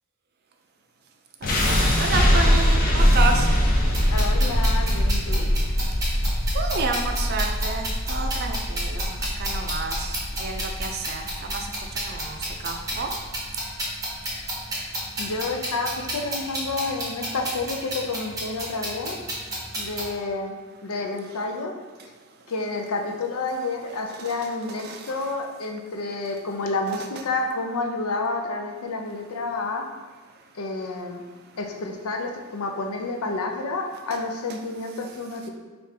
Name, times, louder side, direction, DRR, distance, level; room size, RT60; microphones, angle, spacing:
sound 1, 1.4-13.5, equal, 40° left, 0.6 m, -22 dB
voice 1, 1.4-3.5 6.5-13.2 24.1-24.3 24.8-25.1 31.4-31.5, right 3 dB, 45° right, 4 dB, 0.4 m, -31 dB
sound 2, 3.8-20.1, right 1 dB, 15° right, 0.7 m, -32 dB
voice 2, 4.1-5.5 15.2-19.2 19.8-21.7 22.5-29.8 30.6-31.2 31.6-35.5, left 3 dB, 85° left, 2 dB, 0.5 m, -29 dB
4.9 x 2.5 x 3.3 m, 1.3 s
head